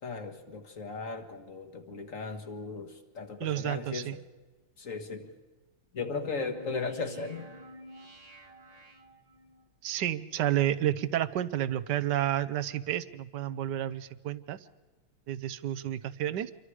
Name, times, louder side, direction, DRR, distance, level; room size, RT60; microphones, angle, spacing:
voice 1, 0.0-4.2 4.8-5.4 5.9-7.5, left 4 dB, 40° left, 6 dB, 1.9 m, -37 dB
voice 2, 3.4-4.1 9.8-14.6 15.3-16.5, right 12 dB, 65° right, 13 dB, 1.3 m, -30 dB
sound 1, 6.4-9.7, equal, 20° right, 1.4 m, -49 dB
27.5 x 23.5 x 4.9 m, 1.3 s
omnidirectional pair, 2.2 m